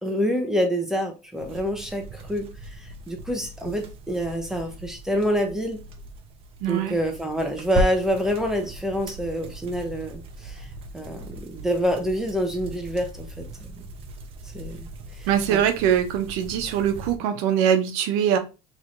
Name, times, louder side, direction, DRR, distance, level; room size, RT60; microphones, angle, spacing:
voice 1, 0.0-5.8 6.7-10.7 10.9-13.8 14.5-14.9 15.2-15.6, equal, 5° right, 0.9 m, -27 dB
sound 1, 1.4-17.2, right 2 dB, 50° right, 0.8 m, -37 dB
voice 2, 6.6-7.0 15.3-18.4, right 9 dB, 80° right, 0.8 m, -22 dB
3.2 x 2.9 x 3.8 m
supercardioid pair, 120°, 12 cm